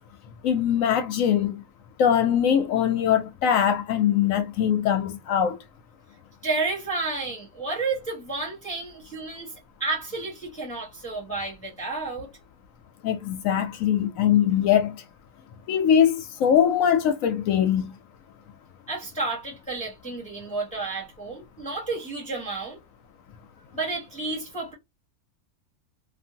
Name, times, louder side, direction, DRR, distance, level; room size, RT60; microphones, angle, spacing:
voice 1, 0.4-1.6 2.0-5.6 13.0-15.0 15.7-17.9, left 9 dB, 70° left, 0.9 m, -22 dB
voice 2, 6.4-9.5 9.8-12.3 18.9-22.8 23.7-24.7, right 3 dB, 5° left, 1.0 m, -31 dB
2.6 x 2.6 x 2.7 m
omnidirectional pair, 1.5 m